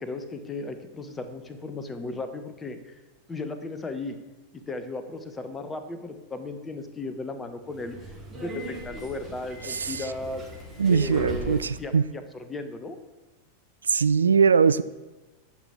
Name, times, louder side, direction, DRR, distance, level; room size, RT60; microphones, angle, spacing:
voice 1, 0.0-2.9 3.3-4.2 4.5-8.0 8.3-10.4 10.9-13.0, left 2 dB, 15° left, 9 dB, 1.1 m, -35 dB
Subway metro underground, 7.6-11.9, equal, 10° right, 3.5 m, -39 dB
voice 2, 9.6-10.1 10.8-12.0 13.9-14.8, right 6 dB, 70° right, 15 dB, 0.3 m, -21 dB
10.0 x 6.1 x 6.8 m, 1.1 s
figure-of-eight pair, 90°, 0 cm